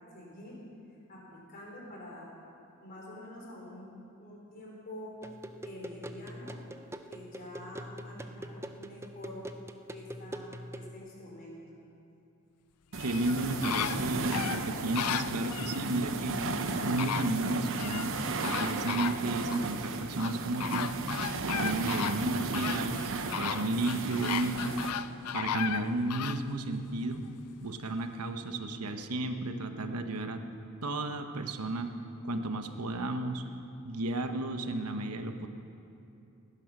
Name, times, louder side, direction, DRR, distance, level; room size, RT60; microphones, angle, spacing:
voice 1, 0.1-0.6 1.1-2.3 2.8-3.9 4.2-5.1 5.6-6.6 7.1-9.4 9.9-11.6, left 1 dB, 40° left, -3 dB, 4.0 m, -47 dB
sound 1, 5.2-10.9, right 1 dB, 10° right, 0.5 m, -44 dB
sound 2, 12.9-24.9, right 3 dB, 60° right, 1.0 m, -35 dB
sound 3, 13.0-15.8 16.6-16.7 17.0-18.1 18.4-19.6 20.2-26.4 26.9-27.0, left 9 dB, 90° left, 0.5 m, -35 dB
voice 2, 13.0-16.4 16.8-18.2 18.6-20.9 21.4-24.8 25.3-27.2 27.6-30.4 30.8-31.9 32.2-33.4 33.8-35.5, right 2 dB, 90° right, 7 dB, 1.1 m, -33 dB
18.5 x 10.5 x 6.0 m, 2.7 s
head